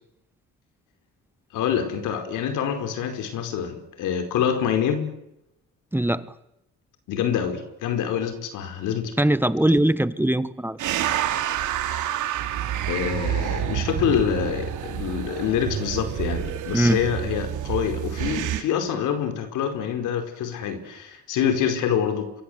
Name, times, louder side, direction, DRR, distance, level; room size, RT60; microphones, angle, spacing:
voice 1, 1.5-5.1 7.1-9.1 9.7-9.8 12.9-22.3, left 8 dB, 90° left, 4.8 m, -26 dB
voice 2, 5.9-6.3 9.2-10.9 16.7-17.0, right 1 dB, 5° right, 1.3 m, -21 dB
sound 1, 10.8-18.6, right 11 dB, 85° right, 2.8 m, -28 dB
26.5 x 24.5 x 8.1 m
cardioid pair, 90°, 30 cm